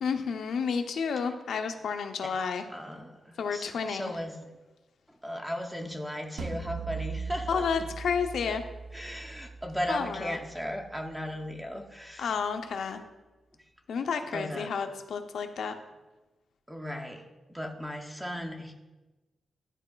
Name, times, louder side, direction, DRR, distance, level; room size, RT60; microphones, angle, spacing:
voice 1, 0.0-2.6 3.4-4.1 7.5-8.6 9.9-10.4 12.2-13.0 13.9-15.8, left 6 dB, 75° left, 7 dB, 0.5 m, -31 dB
voice 2, 2.7-4.5 5.1-7.7 8.5-8.6 8.9-12.3 13.9-14.0 14.3-14.7 16.7-18.7, equal, 5° right, 1 dB, 0.4 m, -37 dB
sound 1, 6.4-11.5, right 4 dB, 75° right, 0.5 m, -40 dB
11.0 x 4.1 x 2.2 m, 1.1 s
wide cardioid pair, 170°, 0 cm